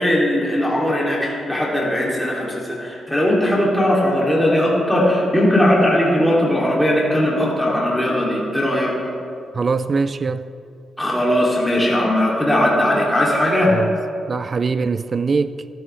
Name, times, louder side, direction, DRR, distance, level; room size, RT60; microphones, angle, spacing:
voice 1, 0.0-8.9 11.0-13.7, left 1 dB, 5° left, 2.7 m, -18 dB
voice 2, 9.5-10.5 13.7-13.9 14.3-15.7, right 4 dB, 45° right, 0.3 m, -22 dB
13.5 x 12.5 x 3.3 m
cardioid pair, 85°, 0 cm